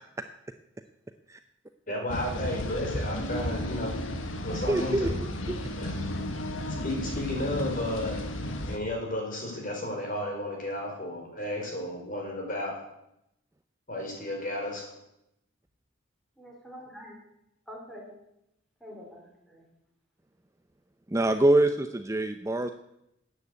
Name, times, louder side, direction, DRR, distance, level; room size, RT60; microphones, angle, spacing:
voice 1, 1.9-3.9 4.4-5.2 5.8-5.9 6.8-8.2 8.7-12.7 13.9-14.9, left 1 dB, 45° left, 0 dB, 4.7 m, -33 dB
sound 1, 2.1-8.8, left 1 dB, 75° left, 1.6 m, -33 dB
voice 2, 4.5-5.1 5.5-5.6 21.1-22.7, right 1 dB, 15° right, 8 dB, 0.5 m, -25 dB
voice 3, 16.4-17.2 17.7-18.1 18.8-19.6, equal, ahead, -1 dB, 4.2 m, -46 dB
13.5 x 9.3 x 8.4 m, 0.83 s
head